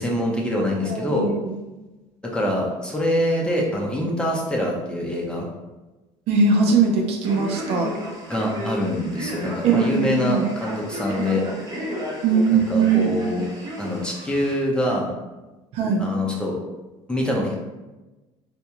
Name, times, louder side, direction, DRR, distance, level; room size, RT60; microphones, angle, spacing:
voice 1, 0.0-1.3 2.3-5.5 8.3-11.4 12.5-13.4 13.8-15.1 16.0-16.6 17.1-17.6, left 1 dB, 10° left, -2 dB, 0.7 m, -24 dB
voice 2, 0.8-1.5 6.3-7.9 9.6-10.5 11.1-11.6 12.2-13.5 15.7-16.0, right 5 dB, 65° right, 1 dB, 0.7 m, -21 dB
Male speech man speaking, 7.2-14.5, equal, 35° right, 0.9 m, -33 dB
3.4 x 2.6 x 2.9 m, 1.1 s
cardioid pair, 120°, 11 cm